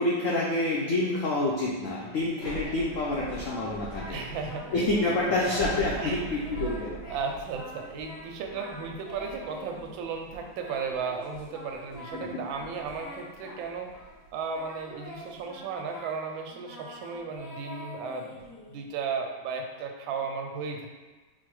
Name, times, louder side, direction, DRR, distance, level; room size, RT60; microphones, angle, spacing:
voice 1, 0.0-4.2 4.7-6.9 12.1-12.4, left 2 dB, 85° left, -4 dB, 0.7 m, -28 dB
Thunder / Rain, 2.2-15.4, right 3 dB, 70° left, 1.7 m, -43 dB
Singing, 2.4-4.2 4.5-5.2 5.4-6.2 6.4-8.2 8.5-10.0 10.6-14.2 14.5-18.9, left 1 dB, 35° left, 1.3 m, -45 dB
voice 2, 4.1-4.8 5.5-6.2 7.1-14.0 14.3-20.9, right 5 dB, 85° right, 3 dB, 1.3 m, -35 dB
4.4 x 2.1 x 4.6 m, 1.3 s
omnidirectional pair, 2.1 m